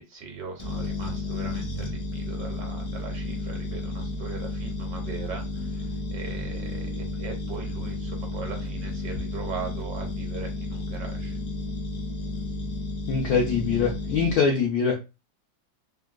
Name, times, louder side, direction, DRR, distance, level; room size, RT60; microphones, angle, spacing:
voice 1, 0.0-11.4 14.4-14.6, right 5 dB, 70° right, 3 dB, 1.3 m, -39 dB
sound 1, 0.6-14.3, left 2 dB, 40° left, 0.6 m, -32 dB
voice 2, 13.1-15.0, left 5 dB, 75° left, -1 dB, 0.8 m, -23 dB
3.5 x 2.2 x 2.2 m, 0.28 s
omnidirectional pair, 2.1 m